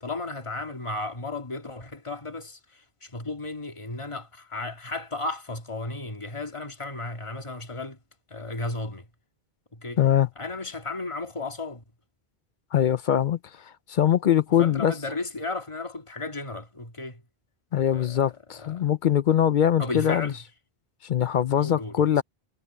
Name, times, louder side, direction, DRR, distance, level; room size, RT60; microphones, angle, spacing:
voice 1, 0.0-8.0 8.3-9.1 9.7-10.0 10.4-11.8 14.6-17.2 17.9-18.9 19.8-20.4 21.6-22.2, left 2 dB, 30° left, 2.0 m, -34 dB
voice 2, 10.0-10.3 12.7-13.4 13.9-14.9 17.7-20.3 21.0-22.2, left 10 dB, 60° left, 0.6 m, -22 dB
omnidirectional pair, 1.0 m